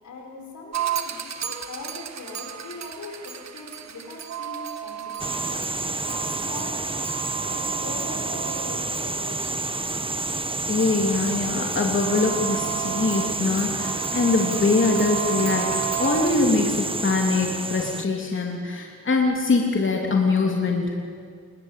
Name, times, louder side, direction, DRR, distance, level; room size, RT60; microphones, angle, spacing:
voice 1, 0.0-6.8 7.5-9.5, left 2 dB, 80° left, 1 dB, 5.9 m, -40 dB
sound 1, 0.7-16.3, right 11 dB, 65° right, 1.6 m, -34 dB
sound 2, 5.2-18.1, right 3 dB, 20° right, 1.1 m, -29 dB
voice 2, 10.7-15.7 16.0-20.9, left 3 dB, 40° left, 1 dB, 2.9 m, -23 dB
28.0 x 21.5 x 8.3 m, 2.1 s
cardioid pair, 95°, 29 cm